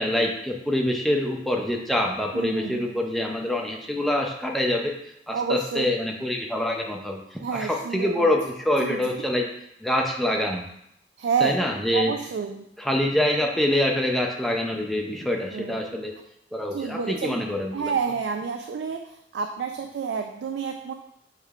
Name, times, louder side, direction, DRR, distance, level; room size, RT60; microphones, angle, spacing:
voice 1, 0.0-4.9 5.3-9.5 9.8-10.6 11.4-12.1 12.8-16.1 16.5-17.9, left 1 dB, ahead, 1 dB, 0.5 m, -25 dB
voice 2, 2.3-2.9 5.3-5.9 7.4-8.3 8.8-9.0 11.2-11.5 11.9-12.6 15.5-15.8 16.7-17.4 17.7-20.9, right 6 dB, 75° right, 5 dB, 0.3 m, -29 dB
6.5 x 3.2 x 2.4 m, 0.77 s
head